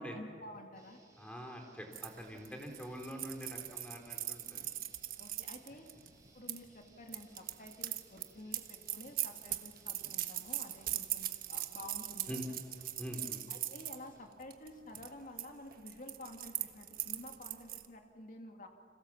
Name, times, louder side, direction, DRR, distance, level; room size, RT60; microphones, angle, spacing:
voice 1, 0.0-1.0 5.2-5.9 6.3-12.5 13.5-18.7, left 1 dB, 50° left, 4 dB, 2.3 m, -51 dB
sound 1, 0.7-14.5, right 2 dB, 20° right, 5.1 m, -66 dB
voice 2, 1.2-4.7 12.3-12.5 13.0-13.4, equal, 5° left, 3 dB, 3.5 m, -45 dB
sound 2, 1.9-6.6 7.1-14.0 14.4-14.7 14.9-15.5 15.7-17.9, right 13 dB, 55° right, 1.3 m, -40 dB
30.0 x 26.5 x 7.3 m, 2.3 s
head